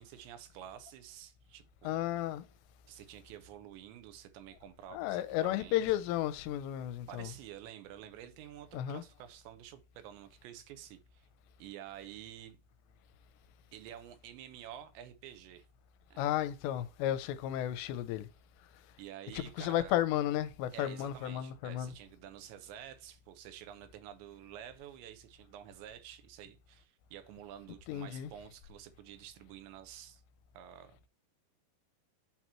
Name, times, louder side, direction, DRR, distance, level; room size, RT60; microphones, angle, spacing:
voice 1, 0.0-2.1 2.9-5.8 7.1-11.3 11.6-12.6 13.7-15.6 16.1-16.3 19.0-19.9 20.7-30.2 30.5-31.1, right 11 dB, 85° right, 3.1 m, -50 dB
voice 2, 1.8-2.4 4.9-7.3 8.7-9.0 16.2-18.3 19.3-21.9 27.9-28.3, left 12 dB, 85° left, 2.8 m, -33 dB
8.2 x 3.0 x 5.6 m
omnidirectional pair, 5.0 m